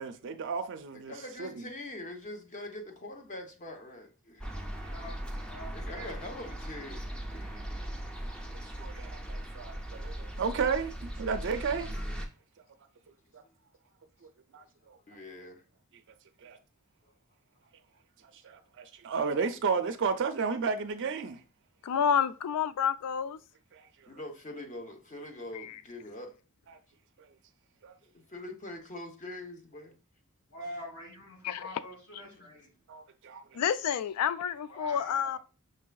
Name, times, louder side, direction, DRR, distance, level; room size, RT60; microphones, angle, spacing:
voice 1, 0.0-1.1 1.4-1.5 4.8-5.0 8.8-10.9 11.2-11.9 13.3-13.4 14.5-15.0 16.4-16.6 18.4-21.4 23.7-24.1 27.8-27.9 32.9-33.4, right 5 dB, 55° right, 0.4 m, -33 dB
voice 2, 0.9-4.5 5.7-7.6 15.1-15.6 24.1-26.3 28.0-29.9 32.2-32.6, left 1 dB, 35° left, 0.8 m, -44 dB
sound 1, 4.4-12.3, right 1 dB, 5° left, 0.4 m, -39 dB
voice 3, 4.9-5.2 5.5-6.1 30.5-32.7 34.7-35.4, equal, 55° left, 2.2 m, -45 dB
voice 4, 21.8-23.4 25.5-25.7 31.4-31.6 33.5-35.4, left 8 dB, 85° left, 0.3 m, -29 dB
5.4 x 3.3 x 2.2 m
head